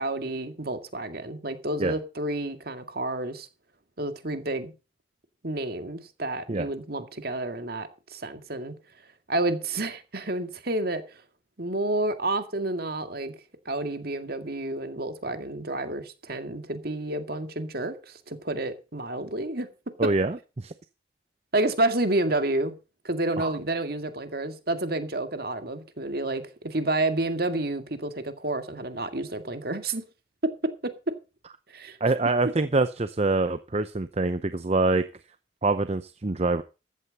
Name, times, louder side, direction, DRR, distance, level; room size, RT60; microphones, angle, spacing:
voice 1, 0.0-3.5 4.0-4.7 5.4-8.7 9.3-11.2 11.6-13.4 13.7-19.7 21.5-22.7 23.0-30.0 30.8-30.9 31.7-32.1, right 2 dB, 50° right, 2.1 m, -30 dB
voice 2, 20.0-20.7 23.4-23.5 32.0-35.0 35.6-36.6, right 3 dB, 35° right, 0.6 m, -25 dB
14.0 x 11.0 x 4.1 m
head